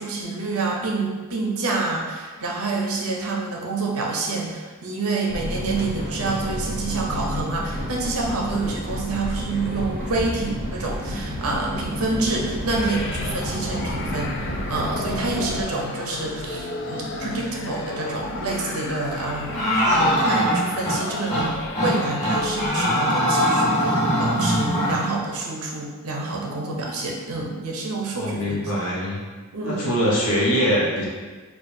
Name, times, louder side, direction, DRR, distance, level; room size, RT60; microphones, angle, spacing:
voice 1, 0.0-28.6 29.5-30.0, right 3 dB, 75° right, -1 dB, 0.7 m, -28 dB
sound 1, 5.3-15.6, equal, 35° left, 1.3 m, -30 dB
sound 2, 12.7-23.3, left 2 dB, 55° left, 0.4 m, -34 dB
sound 3, 19.5-21.0 21.3-21.5 21.7-21.9 22.2-25.0, equal, 15° left, 1.4 m, -21 dB
voice 2, 28.1-29.2 29.6-31.1, equal, 80° left, -5 dB, 1.0 m, -23 dB
4.6 x 2.3 x 2.6 m, 1.4 s
head